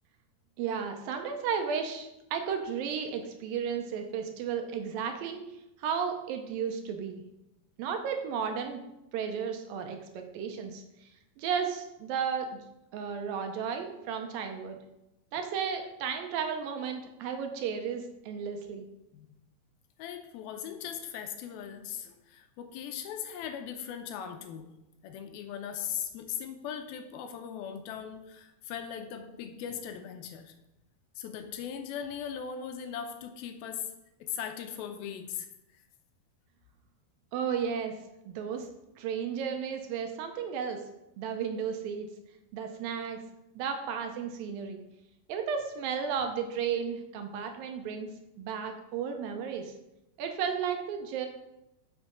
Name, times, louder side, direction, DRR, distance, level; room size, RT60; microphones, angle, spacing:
voice 1, 0.6-5.5 5.8-7.2 7.8-8.8 9.1-11.1 11.4-12.5 12.9-14.8 15.3-18.9 37.3-37.9 38.3-38.7 39.0-40.8 41.2-42.1 42.5-43.2 43.6-44.8 45.3-48.1 48.4-49.7 50.2-51.3, right 7 dB, 80° right, 5 dB, 2.3 m, -33 dB
voice 2, 20.0-24.7 25.0-30.5 31.2-33.9 34.2-35.5, left 8 dB, 80° left, 7 dB, 2.5 m, -39 dB
7.9 x 6.3 x 5.1 m, 0.93 s
omnidirectional pair, 4.5 m